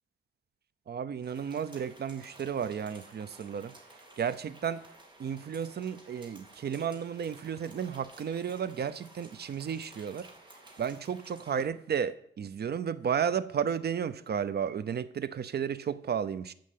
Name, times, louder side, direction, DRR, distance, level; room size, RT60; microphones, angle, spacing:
voice 1, 0.9-3.7 4.2-4.8 5.2-10.3 10.8-16.5, right 7 dB, 55° right, 0.7 m, -33 dB
sound 1, 1.2-11.6, right 1 dB, 25° right, 2.5 m, -54 dB
14.0 x 5.7 x 8.5 m
wide cardioid pair, 140°, 20 cm